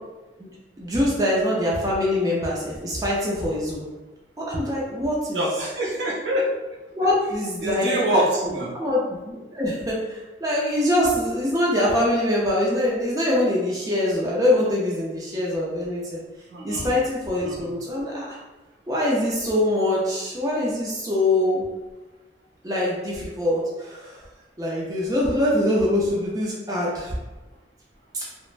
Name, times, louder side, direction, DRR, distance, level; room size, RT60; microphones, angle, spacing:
voice 1, 0.8-3.9 4.4-5.5 6.9-8.0 8.7-16.2 16.6-18.4 18.9-21.6 22.6-24.2 24.6-27.1 28.1-28.2, left 1 dB, 20° right, -5 dB, 0.4 m, -24 dB
voice 2, 5.3-6.5 7.6-8.7 16.5-16.9 17.4-17.7, right 1 dB, 75° right, -3 dB, 0.7 m, -24 dB
3.1 x 2.1 x 2.5 m, 1.1 s
head